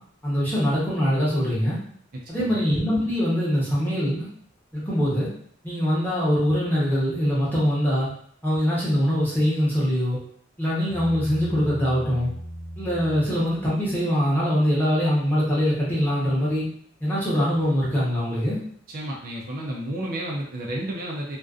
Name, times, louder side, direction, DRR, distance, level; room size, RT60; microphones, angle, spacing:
voice 1, 0.2-1.8 2.3-4.3 4.7-5.3 5.6-8.1 8.4-10.2 10.6-12.3 12.8-16.6 17.0-18.6, equal, 10° left, -9 dB, 0.8 m, -23 dB
Bass guitar, 10.9-14.3, equal, 25° left, 0.4 m, -38 dB
voice 2, 18.9-21.4, right 1 dB, 45° right, -2 dB, 0.4 m, -31 dB
2.4 x 2.2 x 2.3 m, 0.63 s
head